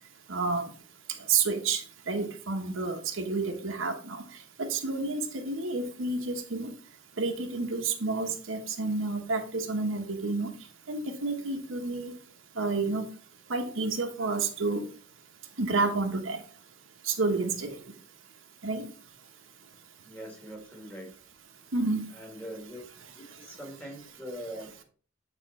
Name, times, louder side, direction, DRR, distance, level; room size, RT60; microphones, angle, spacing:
voice 1, 0.3-0.7 1.3-4.2 4.6-6.7 7.2-10.5 10.9-12.2 12.6-13.0 13.5-14.8 15.6-16.4 17.1-17.7 18.6-18.9 21.7-22.1, right 3 dB, 80° right, 4 dB, 1.2 m, -30 dB
voice 2, 20.1-21.1 22.1-22.8 23.2-24.8, equal, 5° left, 0 dB, 1.8 m, -42 dB
8.9 x 3.7 x 4.2 m, 0.43 s
head